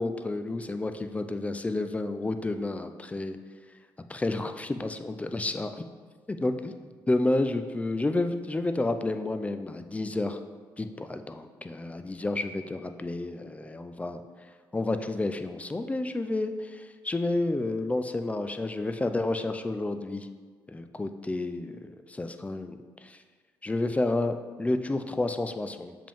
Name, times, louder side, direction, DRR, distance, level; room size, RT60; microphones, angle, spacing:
voice 1, 0.0-3.4 4.1-5.7 6.3-6.7 7.1-10.4 10.8-14.2 14.7-20.3 20.7-21.8 22.1-23.2 23.6-26.0, left 2 dB, 15° left, 8 dB, 0.5 m, -30 dB
7.1 x 5.1 x 3.6 m, 1.5 s
supercardioid pair, 75°, 8 cm